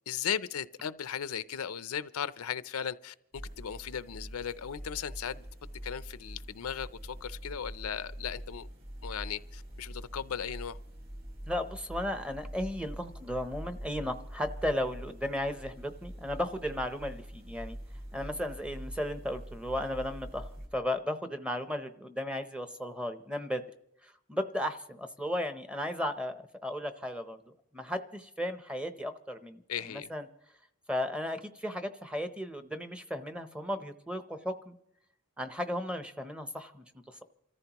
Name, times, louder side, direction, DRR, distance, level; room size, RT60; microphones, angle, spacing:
voice 1, 0.1-5.5 5.8-8.7 9.0-10.8 29.7-30.1, left 8 dB, 85° left, 0.5 m, -37 dB
sound 1, 3.3-20.7, equal, 45° right, 3.5 m, -44 dB
voice 2, 11.5-17.8 18.1-23.6 24.0-27.4 27.7-30.2 30.9-34.8 35.4-37.2, left 1 dB, 5° right, 0.7 m, -35 dB
28.0 x 14.0 x 3.0 m
head